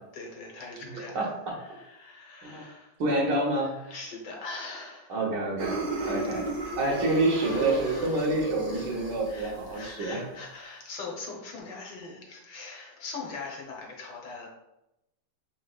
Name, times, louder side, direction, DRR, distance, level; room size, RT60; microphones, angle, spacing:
voice 1, 0.1-1.3 1.6-2.9 3.8-5.2 6.0-6.3 6.6-7.0 7.3-8.3 8.9-14.5, left 3 dB, 65° left, -1 dB, 1.4 m, -42 dB
voice 2, 0.8-1.5 2.4-2.7 3.0-3.8 5.1-10.2, right 2 dB, 65° right, -1 dB, 1.5 m, -28 dB
sound 1, 5.6-9.8, right 2 dB, 45° right, 1.1 m, -33 dB
5.1 x 3.9 x 2.3 m, 0.90 s
omnidirectional pair, 2.1 m